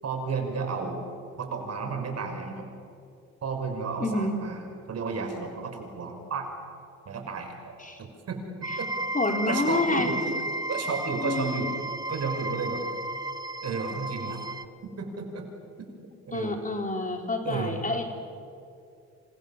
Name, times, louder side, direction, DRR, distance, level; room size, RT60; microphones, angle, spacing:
voice 1, 0.0-1.0 1.4-2.7 3.4-4.6 4.9-6.5 7.1-7.7 8.0-8.4 8.8-8.9 9.5-10.3 10.7-11.7 12.1-12.8 13.6-14.4 15.0-15.5 16.3-16.6 17.4-17.8, right 5 dB, 55° right, 4 dB, 5.8 m, -32 dB
voice 2, 4.0-4.3 7.8-8.0 9.1-10.1 11.2-11.7 16.3-18.1, left 2 dB, 25° left, 3 dB, 4.0 m, -28 dB
sound 1, 8.6-14.6, right 1 dB, 15° right, 1.2 m, -33 dB
27.5 x 27.5 x 7.4 m, 2.5 s
cardioid pair, 90°, 30 cm